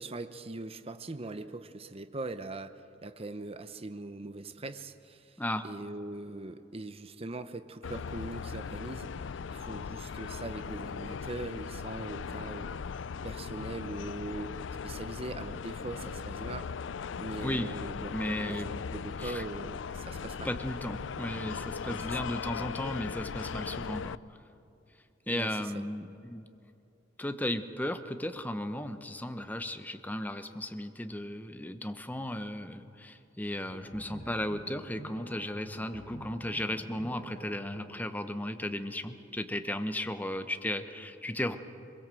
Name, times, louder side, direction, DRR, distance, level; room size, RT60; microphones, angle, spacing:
voice 1, 0.0-5.4 5.6-9.1 9.5-12.7 13.2-14.6 14.8-16.7 17.2-20.6 21.8-22.3 25.3-25.8, right 2 dB, 30° right, 10 dB, 0.8 m, -41 dB
sound 1, 7.8-24.2, left 6 dB, 85° left, 0.4 m, -38 dB
voice 2, 18.1-18.7 19.2-19.4 20.4-24.2 25.3-26.4 27.2-41.6, left 1 dB, 10° left, 8 dB, 1.0 m, -35 dB
sound 2, 33.5-39.3, equal, 45° left, 6.6 m, -49 dB
23.5 x 22.0 x 7.7 m, 2.7 s
head